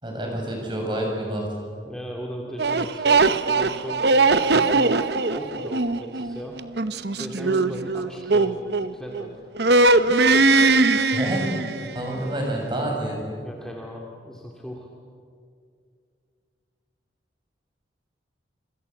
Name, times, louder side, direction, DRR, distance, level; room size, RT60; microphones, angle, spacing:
voice 1, 0.0-1.5 11.1-13.2, right 1 dB, 25° right, 0 dB, 6.8 m, -28 dB
voice 2, 1.8-5.0 5.3-6.6 7.2-9.4 10.7-10.8 11.7-12.1 13.4-14.9, equal, 5° left, -2 dB, 2.3 m, -37 dB
sound 1, 2.6-9.3 9.6-12.0, right 3 dB, 60° right, 0.9 m, -20 dB
27.5 x 25.5 x 8.0 m, 2.2 s
head